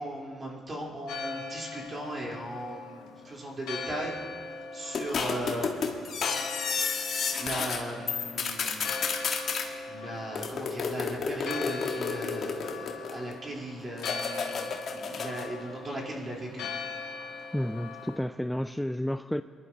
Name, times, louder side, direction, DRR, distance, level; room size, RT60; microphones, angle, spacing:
voice 1, 0.0-4.1 4.7-5.7 7.3-9.0 9.3-16.7, right 1 dB, 35° right, -3 dB, 4.0 m, -37 dB
Church bell, 1.1-18.2, left 4 dB, 85° left, 1.6 m, -41 dB
sound 1, 4.9-7.8 8.1-9.7 10.3-13.3 14.0-15.5, left 5 dB, 55° left, 1.6 m, -31 dB
voice 2, 17.5-19.4, left 1 dB, 5° left, 11 dB, 0.3 m, -31 dB
23.0 x 11.5 x 2.9 m, 2.2 s
cardioid pair, 80°, 0 cm